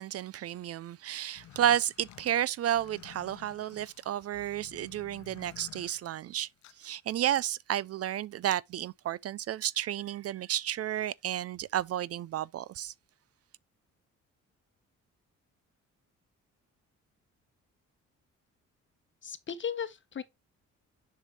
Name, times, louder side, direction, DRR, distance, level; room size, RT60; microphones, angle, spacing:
voice 1, 0.0-6.5 6.8-12.9, right 11 dB, 55° right, 0.4 m, -32 dB
sound 1, 1.2-6.9, left 12 dB, 70° left, 0.8 m, -53 dB
voice 2, 19.2-20.2, left 8 dB, 40° left, 1.0 m, -36 dB
7.1 x 5.5 x 2.8 m
cardioid pair, 90°, 30 cm